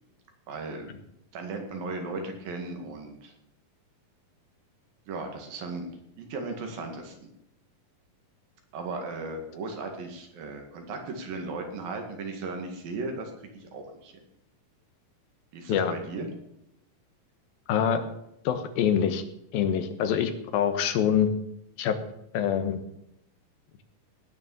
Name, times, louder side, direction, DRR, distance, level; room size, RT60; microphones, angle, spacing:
voice 1, 0.5-0.9 1.3-3.3 5.1-5.9 6.2-7.3 8.7-14.1 15.5-16.3, right 3 dB, 75° right, 3 dB, 3.8 m, -36 dB
voice 2, 17.7-18.0 18.4-19.2 19.5-21.3 21.8-22.0 22.3-22.8, left 8 dB, 90° left, 9 dB, 3.0 m, -25 dB
17.5 x 6.5 x 7.1 m, 0.78 s
omnidirectional pair, 4.1 m